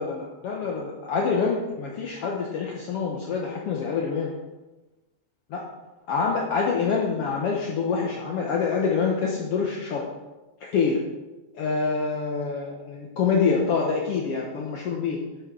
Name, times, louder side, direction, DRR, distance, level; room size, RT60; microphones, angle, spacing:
voice 1, 0.0-4.3 5.5-5.6 6.1-10.0 10.7-11.0 11.6-15.2, left 5 dB, 60° left, -1 dB, 1.9 m, -26 dB
10.5 x 6.4 x 6.2 m, 1.1 s
omnidirectional pair, 3.3 m